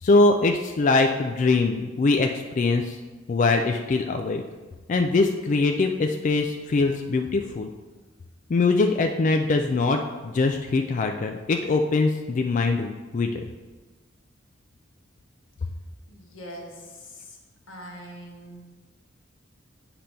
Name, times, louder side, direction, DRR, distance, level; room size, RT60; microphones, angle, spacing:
voice 1, 0.0-2.3 2.6-3.0 3.3-4.4 4.9-7.7 8.5-13.5, left 3 dB, 40° left, 4 dB, 0.3 m, -22 dB
voice 2, 16.1-17.4 17.7-18.6, equal, 90° left, 0 dB, 1.3 m, -42 dB
8.5 x 2.9 x 5.1 m, 1.3 s
head